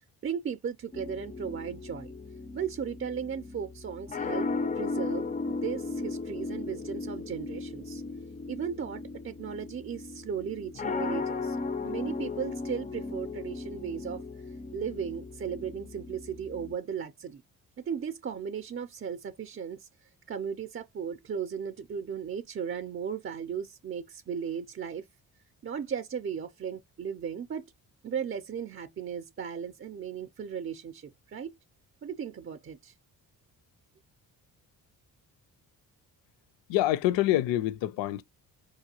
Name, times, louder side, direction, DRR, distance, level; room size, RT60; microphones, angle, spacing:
voice 1, 0.2-2.1 2.5-8.0 8.5-11.6 11.8-14.2 14.7-17.4 17.9-25.1 25.6-27.6 28.0-31.5 32.0-32.9, right 7 dB, 30° right, 0.5 m, -36 dB
sound 1, 0.9-16.7, left 3 dB, 20° left, 0.4 m, -36 dB
voice 2, 36.7-38.2, left 14 dB, 65° left, 0.6 m, -26 dB
4.8 x 2.3 x 2.8 m
hypercardioid pair, 45°, 48 cm